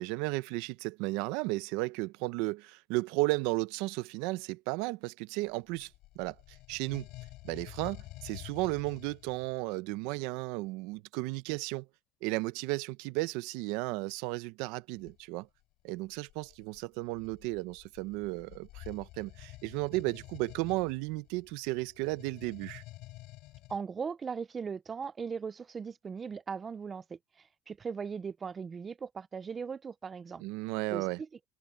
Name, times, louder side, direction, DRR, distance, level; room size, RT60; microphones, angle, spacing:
voice 1, 0.0-5.9 6.2-6.4 6.7-7.1 7.4-11.9 12.2-15.5 15.8-22.8 30.4-31.2, right 22 dB, 70° right, 0.7 m, -34 dB
sound 1, 5.5-9.6 15.0-15.2 16.0-23.8, left 18 dB, 60° left, 3.1 m, -50 dB
voice 2, 23.7-30.4 30.9-31.3, right 6 dB, 20° right, 0.4 m, -39 dB
cardioid pair, 160°, 0 cm